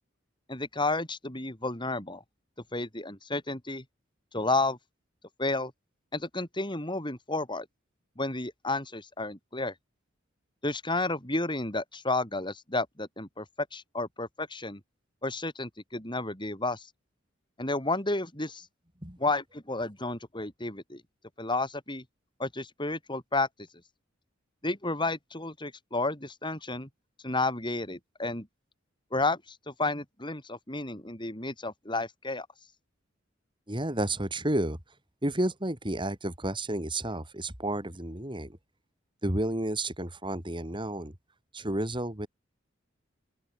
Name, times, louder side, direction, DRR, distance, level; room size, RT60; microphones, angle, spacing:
voice 1, 0.5-2.2 2.7-3.8 4.3-4.8 5.4-5.7 6.1-7.7 8.2-9.7 10.6-13.4 13.7-14.8 15.2-16.9 17.6-18.7 19.2-21.0 21.4-22.0 22.4-23.5 24.6-26.9 27.2-28.5 29.1-32.5, left 2 dB, 25° left, 7.7 m, -31 dB
voice 2, 33.7-34.8 35.2-38.6 39.2-41.1 41.5-42.3, right 1 dB, 25° right, 4.5 m, -31 dB
open air
head